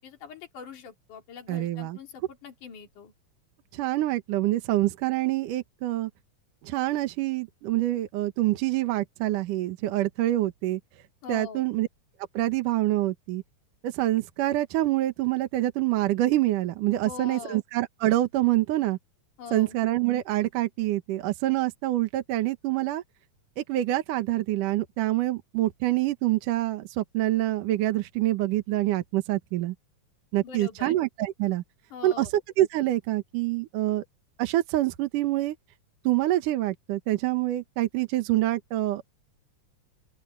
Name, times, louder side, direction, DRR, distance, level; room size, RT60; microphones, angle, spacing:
voice 1, 0.0-3.1 11.2-11.7 17.0-17.6 19.4-19.8 30.4-30.9 31.9-32.3, left 7 dB, 60° left, 4.8 m, -42 dB
voice 2, 1.5-2.0 3.7-6.1 6.6-10.8 11.3-11.9 12.3-13.4 13.8-19.0 19.5-23.0 23.6-29.7 30.3-31.6 32.0-32.3 32.6-34.0 34.4-35.6 36.0-39.0, right 15 dB, 70° right, 2.6 m, -26 dB
open air
omnidirectional pair, 4.0 m